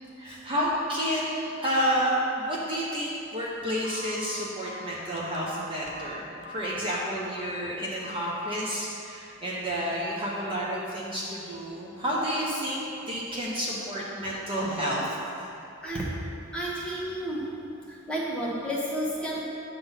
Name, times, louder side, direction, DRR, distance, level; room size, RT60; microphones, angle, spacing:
voice 1, 0.2-15.0, equal, 25° right, -5 dB, 1.0 m, -30 dB
Telephone, 3.8-6.8 7.3-7.6 8.0-8.3, equal, 55° left, 0.7 m, -42 dB
voice 2, 16.5-17.4 17.9-19.4, right 1 dB, 5° left, -6 dB, 1.3 m, -31 dB
9.5 x 3.8 x 7.2 m, 2.6 s
head